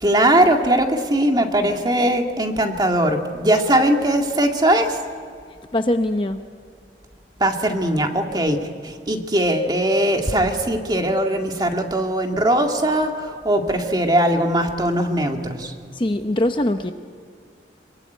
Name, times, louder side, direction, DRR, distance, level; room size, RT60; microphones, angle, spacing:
voice 1, 0.0-5.0 7.4-15.7, right 1 dB, 25° right, 3 dB, 2.1 m, -20 dB
voice 2, 5.7-6.4 15.9-16.9, left 1 dB, 25° left, 7 dB, 0.8 m, -21 dB
26.5 x 23.0 x 9.3 m, 2.1 s
head